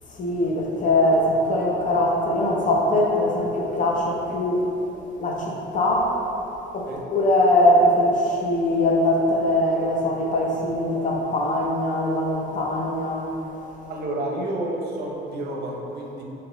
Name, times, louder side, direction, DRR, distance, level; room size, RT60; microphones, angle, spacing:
voice 1, 0.2-4.6 5.2-6.1 6.7-13.3 13.5-13.6, left 1 dB, 40° left, -1 dB, 0.6 m, -21 dB
voice 2, 13.9-16.2, right 1 dB, 55° right, -1 dB, 0.7 m, -30 dB
3.0 x 2.9 x 3.8 m, 2.9 s
cardioid pair, 95°, 20 cm